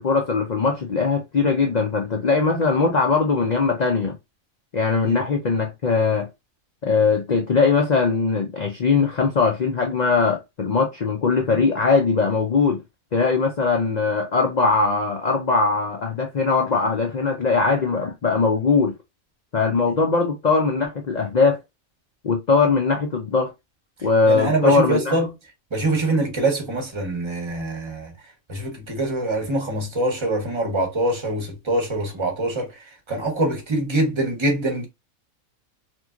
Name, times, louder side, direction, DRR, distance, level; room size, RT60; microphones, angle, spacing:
voice 1, 0.0-4.2 4.7-6.3 6.8-12.8 13.1-18.9 19.5-21.6 22.2-23.5 24.0-25.2, left 4 dB, 80° left, 0.3 m, -20 dB
voice 2, 24.3-25.3 25.7-28.1 28.5-32.7 33.1-34.9, right 2 dB, 25° right, 0.7 m, -24 dB
3.0 x 2.6 x 2.3 m
omnidirectional pair, 1.5 m